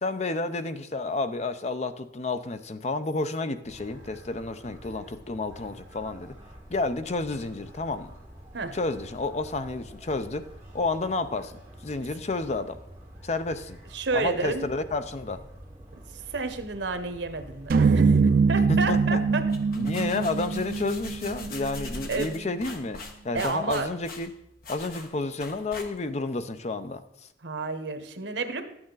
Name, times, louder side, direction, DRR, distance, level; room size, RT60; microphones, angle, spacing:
voice 1, 0.0-6.3 6.7-8.1 8.7-10.5 10.7-11.5 11.8-12.8 13.2-13.8 14.1-15.4 18.7-19.2 19.8-24.3 24.7-27.0, left 3 dB, 40° left, 10 dB, 0.6 m, -30 dB
sound 1, 3.6-21.5, right 1 dB, 10° right, 3.7 m, -48 dB
voice 2, 13.9-14.6 16.1-19.4 22.1-22.3 23.3-23.9 27.4-28.6, right 3 dB, 85° right, 9 dB, 1.0 m, -30 dB
sound 2, 17.7-22.0, right 4 dB, 55° right, 0.3 m, -23 dB
sound 3, 19.3-26.3, left 2 dB, 55° left, 1.3 m, -42 dB
12.0 x 8.7 x 3.9 m, 0.80 s
head